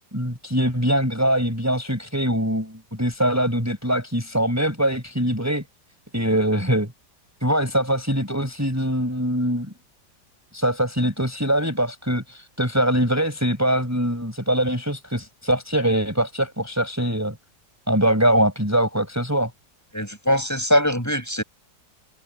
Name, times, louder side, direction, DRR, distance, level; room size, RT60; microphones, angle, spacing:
voice 1, 0.0-5.6 6.1-6.9 7.4-9.7 10.5-17.3 17.9-19.5, right 1 dB, 10° right, 6.5 m, -23 dB
voice 2, 19.9-21.4, equal, 10° left, 8.0 m, -22 dB
omnidirectional pair, 2.0 m